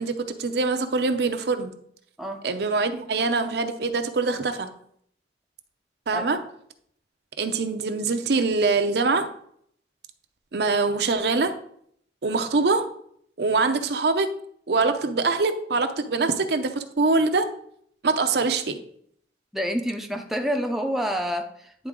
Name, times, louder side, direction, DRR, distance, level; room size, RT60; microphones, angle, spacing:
voice 1, 0.0-1.7 2.4-4.7 6.1-6.4 7.4-9.3 10.5-11.5 12.2-12.9 13.4-14.3 14.7-17.5 18.0-18.8, right 3 dB, 65° right, 7 dB, 0.6 m, -24 dB
voice 2, 19.5-21.9, equal, ahead, 3 dB, 0.6 m, -28 dB
9.9 x 3.9 x 3.7 m, 0.66 s
head